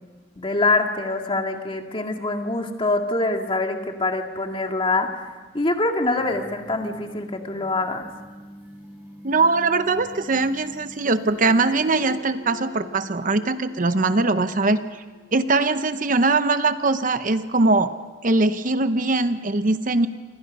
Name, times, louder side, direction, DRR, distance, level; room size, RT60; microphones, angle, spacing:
voice 1, 0.4-5.2 5.5-8.1, left 2 dB, 30° left, 3 dB, 2.1 m, -24 dB
sound 1, 6.2-12.2, equal, 10° right, 4.9 m, -45 dB
voice 2, 9.2-14.8 15.3-17.9 18.2-20.1, right 3 dB, 45° right, 10 dB, 0.9 m, -21 dB
sound 2, 11.3-16.7, left 3 dB, 25° right, 6.7 m, -47 dB
28.0 x 25.5 x 5.5 m, 1.4 s
head